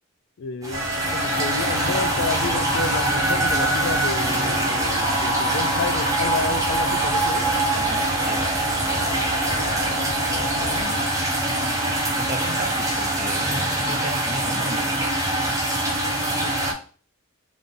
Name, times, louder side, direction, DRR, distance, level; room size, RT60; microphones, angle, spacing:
voice 1, 0.4-7.5 9.6-10.0 10.7-12.3 16.3-16.6, left 4 dB, 65° left, 0.4 m, -32 dB
sound 1, 0.6-16.7, right 1 dB, 15° right, 1.0 m, -24 dB
sound 2, 0.7-10.8, right 2 dB, 75° right, 1.4 m, -27 dB
voice 2, 7.7-8.6 12.2-13.5 13.9-15.0, right 2 dB, 40° right, 0.6 m, -35 dB
3.6 x 3.5 x 3.8 m
head